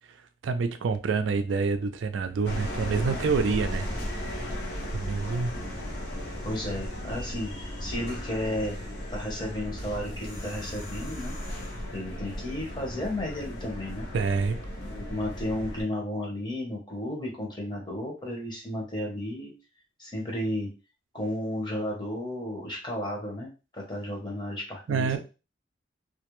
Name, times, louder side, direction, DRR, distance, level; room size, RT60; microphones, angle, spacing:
voice 1, 0.4-3.9 4.9-5.5 14.1-14.6 24.9-25.2, right 5 dB, 80° right, 0.3 m, -27 dB
sound 1, 2.4-15.8, equal, 55° left, 0.7 m, -36 dB
voice 2, 6.4-7.5 7.8-8.8 9.1-11.3 11.9-14.1 14.7-19.5 20.0-20.7 21.1-25.2, left 1 dB, 25° left, 0.8 m, -33 dB
2.4 x 2.1 x 2.9 m
head